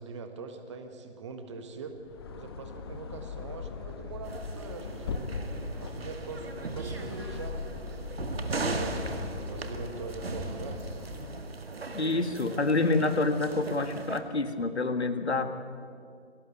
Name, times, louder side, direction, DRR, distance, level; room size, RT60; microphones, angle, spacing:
voice 1, 0.0-2.0 2.3-5.2 5.8-7.7 8.4-10.8, right 4 dB, 25° right, 7 dB, 1.5 m, -42 dB
sound 1, 2.0-11.5, left 4 dB, 20° left, 1.1 m, -39 dB
sound 2, 4.2-14.2, right 3 dB, 60° right, 1.9 m, -38 dB
voice 2, 11.9-15.5, left 3 dB, 70° left, 9 dB, 1.8 m, -27 dB
21.5 x 17.5 x 8.0 m, 2.4 s
figure-of-eight pair, 145°, 34 cm